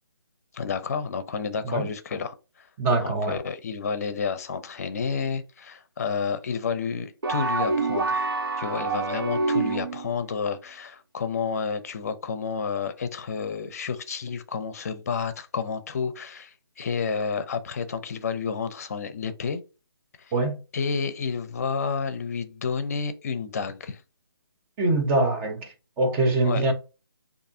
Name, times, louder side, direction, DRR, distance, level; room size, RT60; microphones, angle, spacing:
voice 1, 0.5-2.7 3.0-8.3 8.6-19.6 20.7-24.0 26.5-26.6, left 5 dB, 40° left, 0.7 m, -30 dB
voice 2, 2.8-3.4 20.3-20.6 24.8-26.7, right 2 dB, 10° right, 0.6 m, -24 dB
sound 1, 7.2-10.1, right 3 dB, 65° right, 0.7 m, -26 dB
6.5 x 2.7 x 2.7 m
figure-of-eight pair, 150°, 13 cm